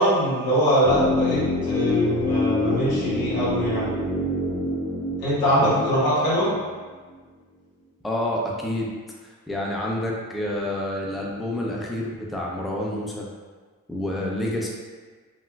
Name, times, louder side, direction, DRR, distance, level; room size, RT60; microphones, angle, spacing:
voice 1, 0.0-3.9 5.2-6.5, equal, 90° left, -10 dB, 1.3 m, -22 dB
sound 1, 0.8-6.9 7.1-7.2, left 2 dB, 25° left, 1.0 m, -26 dB
voice 2, 8.0-8.9 9.5-13.3 13.9-14.7, left 1 dB, ahead, -2 dB, 0.5 m, -28 dB
4.0 x 2.1 x 2.2 m, 1.4 s
cardioid pair, 55°, 35 cm